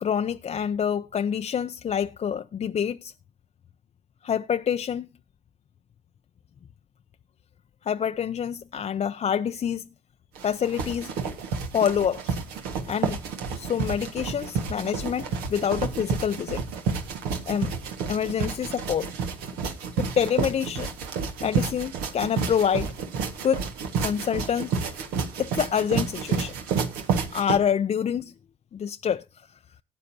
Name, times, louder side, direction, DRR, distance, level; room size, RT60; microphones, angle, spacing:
voice 1, 0.0-3.1 4.2-5.1 7.8-9.8 10.4-11.1 11.7-12.4 12.9-13.2 13.6-16.6 17.5-17.7 18.1-19.1 20.0-20.9 21.4-22.9 23.4-23.6 24.0-24.7 25.4-26.5 27.3-28.3 28.7-29.2, left 8 dB, 45° left, 0.5 m, -26 dB
sound 1, 10.4-27.6, right 5 dB, 80° right, 1.6 m, -30 dB
18.0 x 9.3 x 2.8 m
hypercardioid pair, 50°, 15 cm